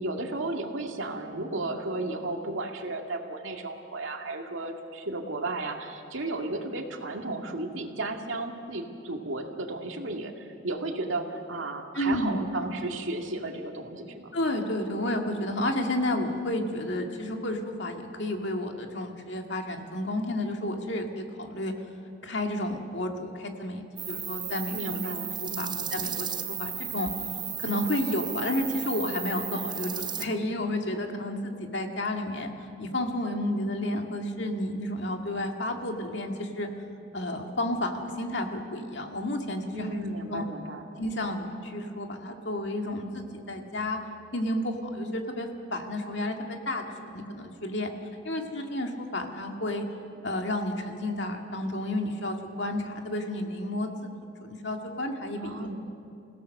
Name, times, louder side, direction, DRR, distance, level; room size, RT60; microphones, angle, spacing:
voice 1, 0.0-14.3 24.7-25.9 39.7-40.8 55.4-55.8, right 2 dB, 85° right, 3 dB, 2.1 m, -34 dB
voice 2, 11.9-12.8 14.3-21.7 22.2-25.1 25.4-27.1 27.6-32.5 32.8-36.7 37.1-39.9 40.3-40.4 41.0-44.0 44.3-47.9 48.2-49.8 50.2-54.1 54.4-55.8, left 1 dB, 65° left, 3 dB, 2.0 m, -31 dB
sound 1, 24.0-30.3, right 9 dB, 20° right, 0.7 m, -35 dB
28.0 x 17.0 x 6.6 m, 2.6 s
head